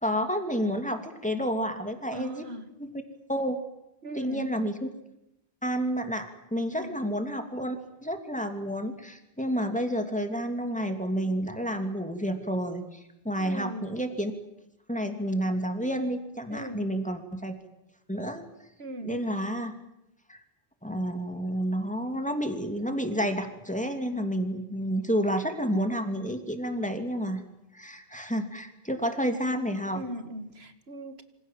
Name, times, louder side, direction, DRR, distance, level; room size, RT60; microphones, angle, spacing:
voice 1, 0.0-2.5 2.8-2.9 3.3-3.6 4.1-4.9 5.6-7.8 8.0-14.3 14.9-17.5 18.1-18.4 19.0-19.7 20.3-20.4 20.8-27.4 27.7-30.0, equal, 5° left, 6 dB, 3.0 m, -30 dB
voice 2, 2.1-2.7 4.0-4.5 6.7-7.0 13.4-13.9 16.5-16.9 18.8-19.1 29.9-31.2, equal, 70° right, 9 dB, 2.5 m, -39 dB
27.5 x 26.0 x 7.6 m, 0.86 s
omnidirectional pair, 1.1 m